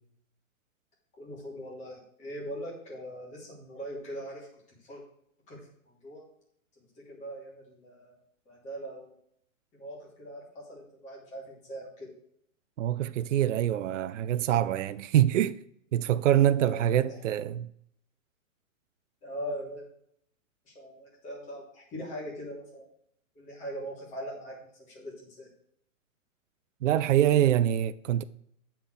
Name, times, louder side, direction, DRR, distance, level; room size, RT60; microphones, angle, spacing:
voice 1, 1.2-4.5 4.8-5.0 5.5-5.6 6.0-6.2 7.1-8.2 8.4-9.1 9.7-12.1 16.5-17.2 19.2-19.8 20.7-22.8 23.3-25.1 25.4-25.5, equal, 15° left, 3.4 m, -41 dB
voice 2, 12.8-15.6 15.9-17.7 26.8-28.2, right 11 dB, 65° right, 0.6 m, -25 dB
9.5 x 5.9 x 6.4 m
hypercardioid pair, 160°, 40 cm